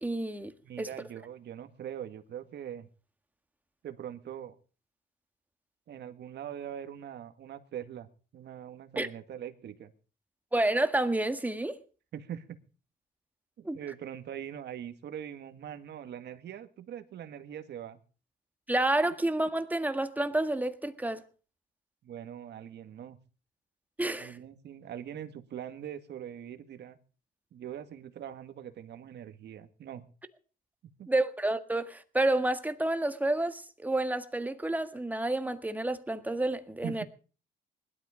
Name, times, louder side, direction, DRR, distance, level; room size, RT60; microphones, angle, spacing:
voice 1, 0.0-0.5 0.8-0.9 9.0-9.1 10.5-11.8 13.6-13.8 18.7-21.2 24.0-24.4 31.1-37.0, right 2 dB, 10° right, 1.7 m, -29 dB
voice 2, 0.6-2.9 3.8-4.5 5.9-9.9 12.1-12.6 13.6-18.0 22.0-23.2 24.2-27.0 27.5-30.0 31.0-31.1 36.8-37.0, right 9 dB, 60° right, 2.0 m, -42 dB
20.0 x 12.5 x 5.1 m
cardioid pair, 105°, 19 cm